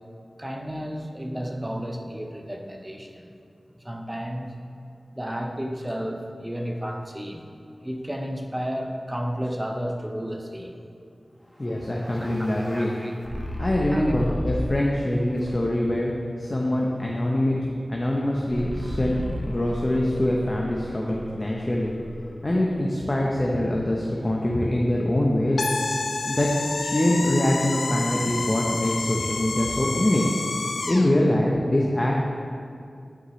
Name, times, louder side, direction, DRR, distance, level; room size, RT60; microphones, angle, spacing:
voice 1, 0.4-3.3 3.8-4.5 5.1-7.4 7.8-10.8 12.0-13.1 13.9-14.2, equal, 20° right, 2 dB, 0.8 m, -32 dB
voice 2, 11.6-12.9 13.6-16.1 16.4-17.6 17.9-19.2 19.4-21.9 22.4-25.7 26.3-26.5 26.8-30.2 30.9-32.2, left 1 dB, 35° left, -2 dB, 0.8 m, -24 dB
sound 1, 11.6-14.9 15.4-15.9 18.5-22.6, equal, 5° left, 1.3 m, -35 dB
sound 2, 25.6-31.1, left 3 dB, 90° left, 0.3 m, -29 dB
9.5 x 6.1 x 3.2 m, 2.4 s
cardioid pair, 40°, 0 cm